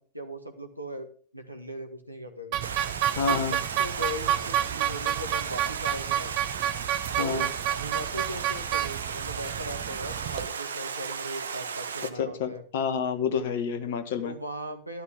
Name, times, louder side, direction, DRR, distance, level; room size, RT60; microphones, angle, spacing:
voice 1, 0.1-1.1 1.3-2.6 3.3-6.3 7.2-12.6 14.2-15.0, equal, 90° right, 5 dB, 1.7 m, -38 dB
sound 1, 2.5-10.5, right 11 dB, 40° right, 0.8 m, -30 dB
Stream, 2.6-12.1, right 6 dB, 70° right, 1.0 m, -35 dB
voice 2, 3.1-3.6 7.2-7.5 12.2-14.3, left 6 dB, 55° left, 9 dB, 1.7 m, -29 dB
12.5 x 12.0 x 3.5 m, 0.42 s
figure-of-eight pair, 90°, 0 cm